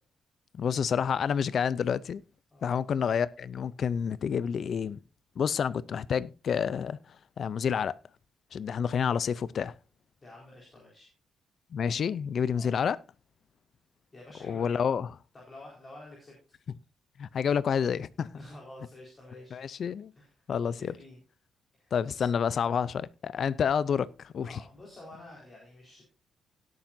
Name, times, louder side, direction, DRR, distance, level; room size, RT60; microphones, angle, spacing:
voice 1, 0.6-2.2 2.6-5.0 5.4-8.0 8.5-9.7 11.7-13.0 14.4-15.1 17.2-18.3 19.5-20.1 20.5-20.9 21.9-24.6, left 7 dB, 50° left, 0.5 m, -29 dB
voice 2, 10.2-11.1 12.5-12.8 14.1-14.7 15.3-16.4 18.4-19.6 20.1-21.2 21.8-22.3 24.4-26.0, left 1 dB, 25° left, 4.5 m, -49 dB
17.0 x 8.8 x 2.6 m
cardioid pair, 145°, 0 cm